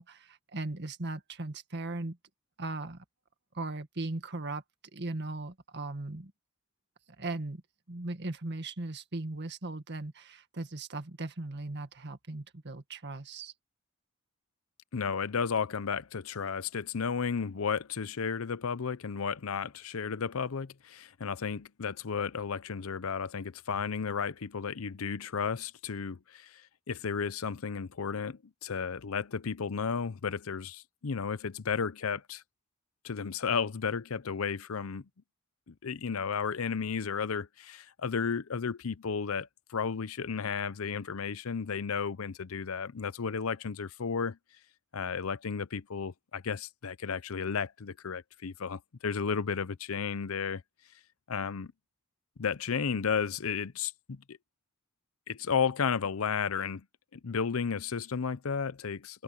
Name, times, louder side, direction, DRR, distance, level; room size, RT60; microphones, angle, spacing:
voice 1, 0.0-2.2 2.6-3.0 3.5-4.6 4.9-6.3 7.2-7.6 7.9-13.5, right 2 dB, 55° right, 1.9 m, -38 dB
voice 2, 14.9-26.6 26.9-32.4 33.0-35.0 35.7-44.4 44.9-50.6 51.3-51.7 52.4-54.4 55.3-56.8 57.1-59.2, left 6 dB, 90° left, 0.7 m, -33 dB
head